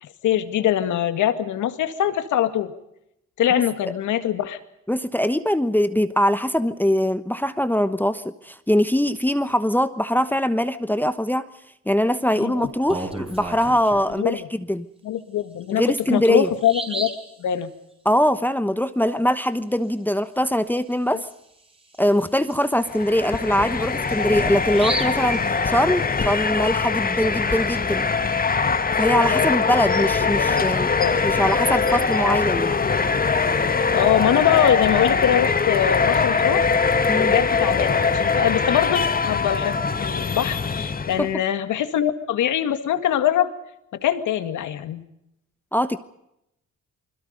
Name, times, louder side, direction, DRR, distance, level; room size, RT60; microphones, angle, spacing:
voice 1, 0.0-2.7 3.4-4.6 12.4-12.7 14.1-14.5 15.0-17.1 17.4-17.7 29.3-29.6 30.0-30.1 30.4-30.7 31.0-31.2 33.9-36.7 37.1-43.5 43.9-45.1, left 10 dB, 80° left, 10 dB, 2.1 m, -23 dB
voice 2, 4.9-11.5 11.9-14.8 15.7-16.5 18.0-21.3 22.0-28.1 29.0-30.9 31.2-32.8 37.1-37.3 41.2-41.3 45.7-46.0, equal, 5° left, 11 dB, 1.1 m, -22 dB
Bird vocalization bird call bird song, 12.7-14.1 15.6-15.7 16.1-16.2 16.6-17.3 20.8-20.9 21.3-21.4 21.9-26.2, right 2 dB, 20° right, 4.9 m, -34 dB
sound 1, 22.8-41.3, left 4 dB, 30° left, 1.5 m, -22 dB
28.5 x 21.5 x 5.3 m, 0.81 s
cardioid pair, 90°, 30 cm